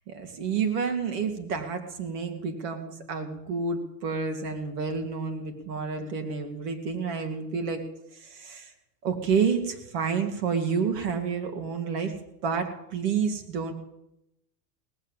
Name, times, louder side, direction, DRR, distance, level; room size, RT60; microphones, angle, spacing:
voice 1, 0.1-7.8 8.1-8.7 9.0-12.1 12.4-13.7, right 5 dB, 80° right, 5 dB, 2.9 m, -29 dB
18.5 x 7.6 x 8.2 m, 0.82 s
supercardioid pair, 125°, 48 cm